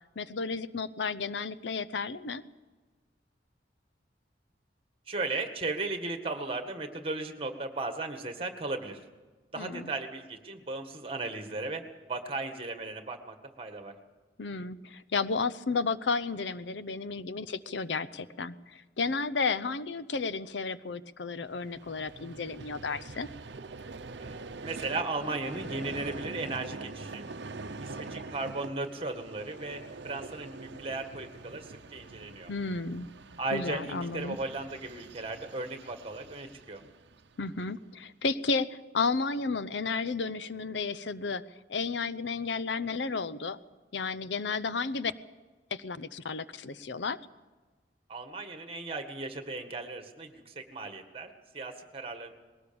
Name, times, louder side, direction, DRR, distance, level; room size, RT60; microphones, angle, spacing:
voice 1, 0.2-2.4 9.6-9.9 14.4-23.3 32.5-33.1 33.5-34.4 37.4-41.4 41.7-43.6 43.9-45.1 45.7-47.2, left 4 dB, 75° left, 15 dB, 0.7 m, -32 dB
voice 2, 5.1-9.0 9.5-14.0 24.2-27.3 27.8-32.5 33.4-36.8 48.1-52.3, right 3 dB, 30° right, 6 dB, 1.9 m, -36 dB
Vehicle, 21.4-37.7, right 3 dB, 70° right, 0.8 m, -44 dB
21.0 x 18.0 x 7.0 m, 1.3 s
head